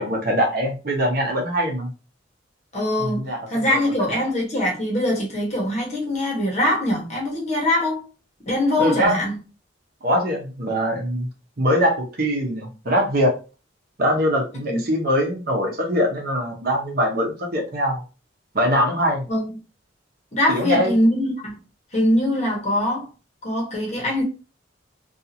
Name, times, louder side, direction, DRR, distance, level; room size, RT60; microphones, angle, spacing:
voice 1, 0.0-1.9 3.0-3.8 4.1-4.2 8.8-9.2 10.0-11.3 11.6-13.3 14.0-18.0 18.5-19.2 20.5-20.9, equal, 50° right, 0.8 m, -22 dB
voice 2, 2.7-8.0 8.5-9.4 14.7-14.8 19.3-19.5 20.3-21.5 21.9-23.1 23.4-24.2, left 1 dB, 35° left, 1.1 m, -22 dB
2.7 x 2.4 x 2.7 m
head